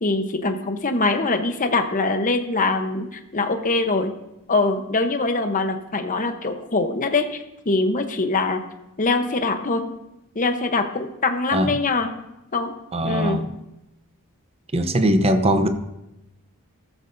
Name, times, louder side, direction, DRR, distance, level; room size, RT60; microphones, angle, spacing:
voice 1, 0.0-4.1 4.5-7.4 7.7-8.6 9.0-9.8 10.3-12.1 12.5-12.7 13.0-13.4, left 3 dB, 35° left, 6 dB, 0.9 m, -23 dB
voice 2, 12.9-13.5 14.7-15.7, right 1 dB, 25° right, 9 dB, 0.7 m, -20 dB
14.5 x 13.5 x 2.7 m, 0.91 s
head